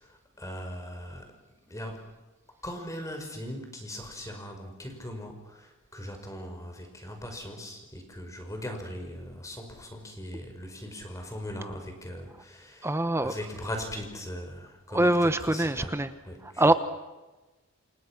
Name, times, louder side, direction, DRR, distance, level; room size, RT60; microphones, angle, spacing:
voice 1, 0.0-1.3 1.7-2.1 2.6-16.0 16.2-16.8, equal, 15° left, 5.3 m, -40 dB
voice 2, 12.8-13.3 14.9-16.1 16.6-16.7, right 1 dB, 10° right, 1.0 m, -23 dB
28.5 x 28.0 x 6.1 m
head